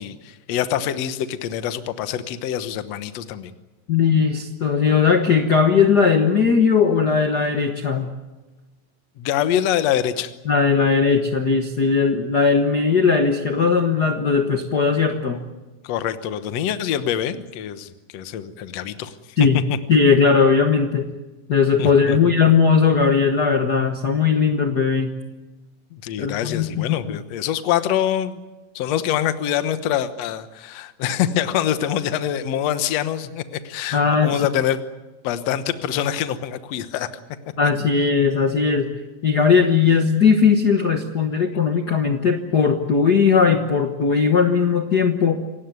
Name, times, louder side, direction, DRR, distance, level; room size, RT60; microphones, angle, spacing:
voice 1, 0.0-3.5 9.2-10.3 15.8-19.1 19.4-19.8 21.8-22.2 25.9-28.4 28.8-34.8 35.2-37.1, left 10 dB, 60° left, 11 dB, 1.9 m, -25 dB
voice 2, 3.9-8.1 10.4-15.5 19.4-19.6 19.9-21.1 21.5-25.1 26.2-27.2 33.9-34.4 37.6-38.9 39.2-45.4, left 5 dB, 85° left, 5 dB, 0.9 m, -18 dB
28.0 x 17.0 x 9.4 m, 1.1 s
omnidirectional pair, 4.0 m